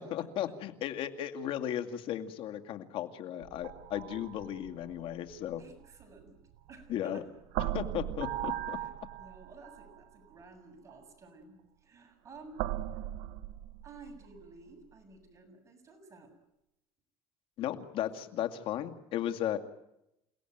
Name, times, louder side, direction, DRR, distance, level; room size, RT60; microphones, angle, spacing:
voice 1, 0.0-5.6 6.9-7.2 7.6-8.8 17.6-19.6, left 11 dB, 65° left, 7 dB, 2.3 m, -35 dB
sound 1, 3.4-7.0 7.5-10.0 10.9-11.0 12.6-14.4, right 14 dB, 90° right, 1.1 m, -38 dB
voice 2, 5.6-6.4 6.7-7.3 8.6-8.9 9.2-12.6 13.8-16.3, right 3 dB, 30° right, 5 dB, 7.5 m, -53 dB
29.0 x 18.0 x 9.3 m, 0.86 s
cardioid pair, 115°, 10 cm